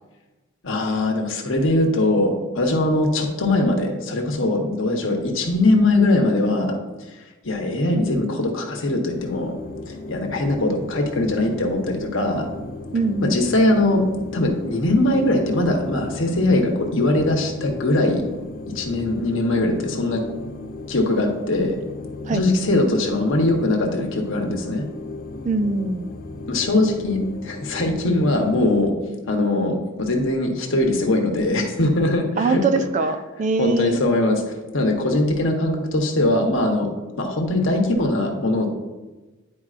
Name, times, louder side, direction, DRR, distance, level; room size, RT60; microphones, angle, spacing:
voice 1, 0.6-6.7 7.4-9.6 9.9-12.5 13.2-14.0 14.3-18.2 18.7-20.2 20.9-21.8 22.3-24.8 26.5-28.9 29.3-32.6 33.6-34.4 34.7-36.9 37.2-38.7, left 2 dB, 60° left, 2 dB, 1.0 m, -21 dB
sound 1, 9.1-28.9, left 2 dB, 40° left, 0.4 m, -36 dB
voice 2, 12.9-13.4 22.2-22.4 25.4-26.1 32.4-34.0, right 3 dB, 35° right, 7 dB, 0.3 m, -22 dB
9.8 x 4.6 x 2.5 m, 1.2 s
head